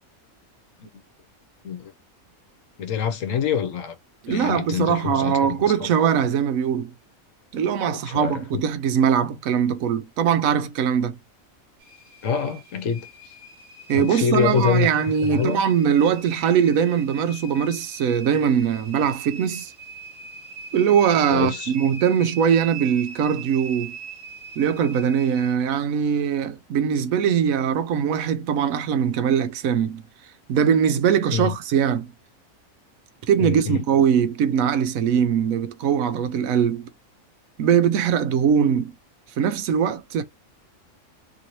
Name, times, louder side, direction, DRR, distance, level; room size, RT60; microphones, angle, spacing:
voice 1, 2.8-3.9 4.3-5.9 7.9-8.6 12.2-13.3 13.9-14.9 15.2-15.6 21.3-21.7 31.3-31.5 33.4-33.8, left 7 dB, 70° left, 1.1 m, -26 dB
voice 2, 4.2-6.9 7.5-11.2 13.9-19.7 20.7-23.9 24.6-30.0 30.5-32.1 33.3-36.9 37.6-38.9 39.4-40.2, right 8 dB, 85° right, 1.0 m, -21 dB
sound 1, 11.8-25.5, right 5 dB, 40° right, 1.2 m, -41 dB
3.0 x 2.7 x 3.0 m
omnidirectional pair, 1.4 m